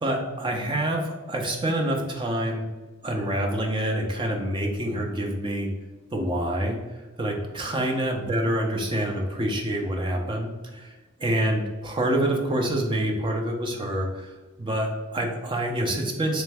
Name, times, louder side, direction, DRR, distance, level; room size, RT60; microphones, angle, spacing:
voice 1, 0.0-2.6 3.0-5.7 6.1-6.8 7.2-10.9 11.2-14.3 14.6-16.4, right 1 dB, 25° right, 1 dB, 0.6 m, -26 dB
3.4 x 3.1 x 3.4 m, 1.2 s
head